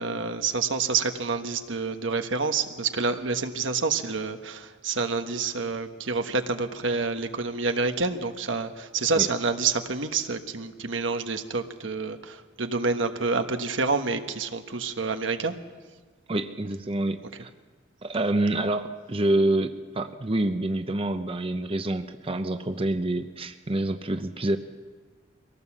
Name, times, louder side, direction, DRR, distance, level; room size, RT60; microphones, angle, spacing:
voice 1, 0.0-15.6, right 4 dB, 85° right, 7 dB, 1.3 m, -28 dB
voice 2, 16.3-17.5 18.0-24.6, right 1 dB, 30° right, 8 dB, 0.8 m, -27 dB
23.5 x 18.0 x 7.3 m, 1.4 s
head